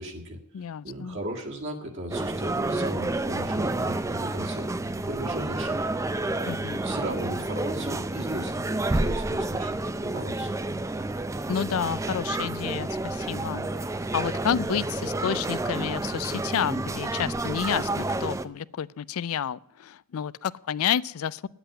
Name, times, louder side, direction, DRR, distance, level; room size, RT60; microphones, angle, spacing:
voice 1, 0.0-4.7 5.0-5.8 6.8-10.5, right 1 dB, 55° right, 0 dB, 1.8 m, -36 dB
voice 2, 0.5-1.2 6.4-6.8 11.5-13.7 14.1-21.5, left 8 dB, 75° left, 20 dB, 0.4 m, -30 dB
sound 1, 2.1-18.5, right 2 dB, 15° right, 0.4 m, -30 dB
10.0 x 8.0 x 9.8 m, 0.73 s
head